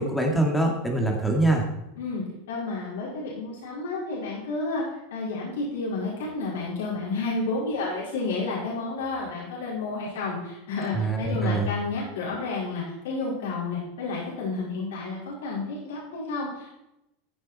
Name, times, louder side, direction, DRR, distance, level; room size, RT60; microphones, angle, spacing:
voice 1, 0.0-1.6 10.9-11.7, right 2 dB, 5° left, 1 dB, 2.4 m, -24 dB
voice 2, 2.0-4.8 5.1-16.8, left 3 dB, 90° left, -5 dB, 4.8 m, -31 dB
14.5 x 7.6 x 4.4 m, 0.88 s
supercardioid pair, 135°, 0 cm